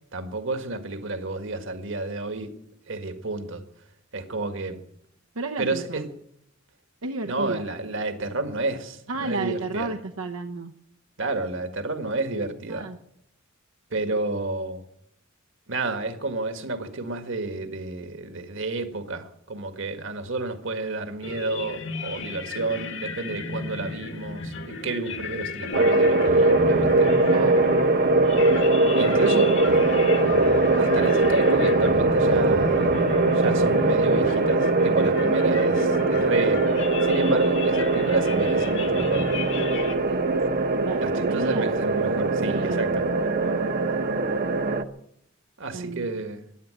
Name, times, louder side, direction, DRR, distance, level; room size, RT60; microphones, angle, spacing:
voice 1, 0.1-2.5 2.9-3.6 4.1-4.8 5.6-6.1 7.2-9.9 11.2-12.9 13.9-14.8 15.7-27.1 28.9-29.8 30.8-33.0 33.3-39.3 41.0-43.1 45.6-46.4, right 2 dB, 65° right, 1.8 m, -30 dB
voice 2, 5.4-5.8 7.0-7.6 9.1-10.7 12.7-13.0 27.3-27.7 29.1-29.5 29.7-30.2 40.1-40.3 40.8-41.7 42.4-43.7 45.7-46.1, right 3 dB, 80° right, 0.9 m, -33 dB
sound 1, 21.2-40.0, left 3 dB, 60° left, 1.8 m, -34 dB
sound 2, 25.7-44.8, right 2 dB, 50° right, 1.0 m, -21 dB
15.0 x 11.0 x 9.0 m
head